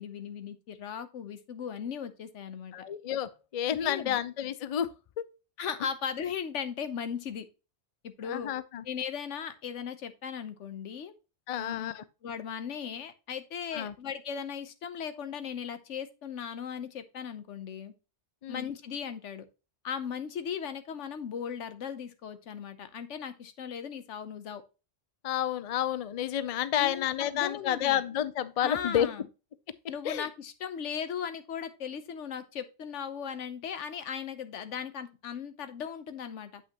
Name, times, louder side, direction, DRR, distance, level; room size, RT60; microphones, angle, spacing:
voice 1, 0.0-2.7 3.7-4.2 5.6-7.5 8.0-8.5 8.8-11.1 11.6-17.9 18.5-19.4 19.8-24.6 26.7-28.0 28.6-29.3 29.9-36.6, left 7 dB, 90° left, 1.2 m, -37 dB
voice 2, 2.7-4.9 5.2-5.3 8.2-8.8 11.5-12.0 13.7-13.9 18.4-18.7 25.2-29.1 30.0-30.3, left 10 dB, 50° left, 0.4 m, -30 dB
8.1 x 5.7 x 2.9 m
omnidirectional pair, 1.2 m